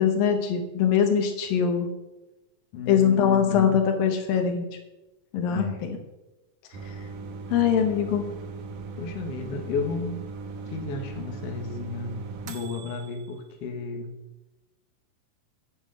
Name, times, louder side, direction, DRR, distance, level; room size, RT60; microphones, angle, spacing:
voice 1, 0.0-1.9 2.9-4.6 5.3-6.0 7.5-8.2, left 8 dB, 75° left, 5 dB, 2.9 m, -22 dB
voice 2, 2.7-3.8 5.5-5.9 9.0-10.2 10.7-14.1, left 4 dB, 55° left, 2 dB, 2.0 m, -33 dB
sound 1, 6.7-13.3, right 4 dB, 70° right, 2.3 m, -39 dB
9.6 x 9.6 x 5.2 m, 1.0 s
omnidirectional pair, 4.2 m